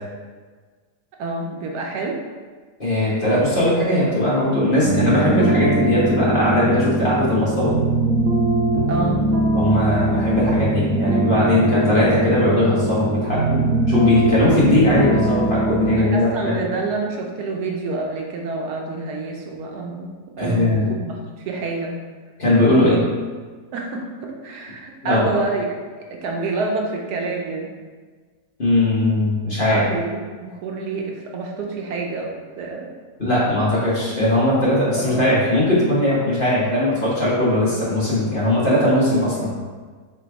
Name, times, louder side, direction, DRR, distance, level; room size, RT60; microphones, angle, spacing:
voice 1, 1.2-2.2 8.9-9.2 15.9-22.0 22.7-23.0 23.7-25.8 26.1-27.7 29.6-32.9 35.1-35.2, right 3 dB, 80° right, 0 dB, 1.2 m, -28 dB
voice 2, 2.8-7.7 9.5-16.5 20.4-20.9 22.4-23.0 25.0-25.3 28.6-29.8 33.2-39.5, left 1 dB, 35° left, -8 dB, 1.3 m, -19 dB
sound 1, 4.8-16.0, right 1 dB, 60° right, 1.0 m, -21 dB
3.4 x 3.0 x 4.6 m, 1.5 s
omnidirectional pair, 1.7 m